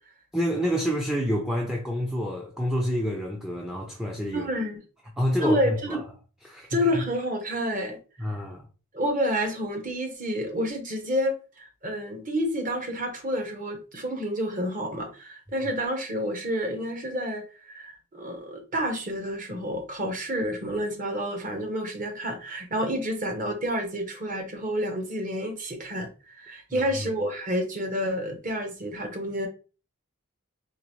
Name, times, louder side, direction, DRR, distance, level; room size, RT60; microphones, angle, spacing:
voice 1, 0.3-4.5 5.2-6.0 6.4-7.0 8.2-8.7 26.7-27.1, equal, ahead, 0.4 m, -28 dB
voice 2, 4.3-4.8 5.4-6.0 6.7-8.0 8.9-29.5, equal, 40° right, 1.0 m, -29 dB
3.8 x 3.1 x 3.1 m
head